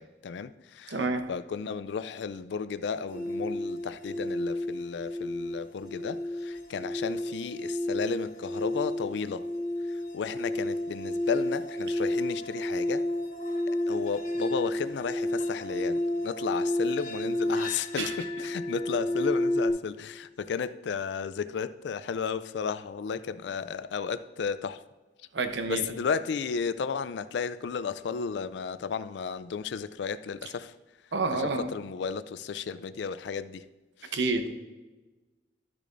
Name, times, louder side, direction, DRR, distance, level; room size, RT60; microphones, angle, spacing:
voice 1, 0.0-1.0 1.3-9.4 9.9-13.0 13.7-24.8 25.7-30.7 31.3-33.6 34.0-34.2, left 6 dB, 70° left, 14 dB, 0.4 m, -34 dB
voice 2, 0.9-1.3 18.0-18.1 25.3-25.9 31.1-31.7 34.1-34.5, right 3 dB, 70° right, 7 dB, 0.8 m, -29 dB
sound 1, 3.1-19.7, left 1 dB, 45° left, 1.2 m, -31 dB
12.0 x 6.6 x 2.6 m, 1.2 s
head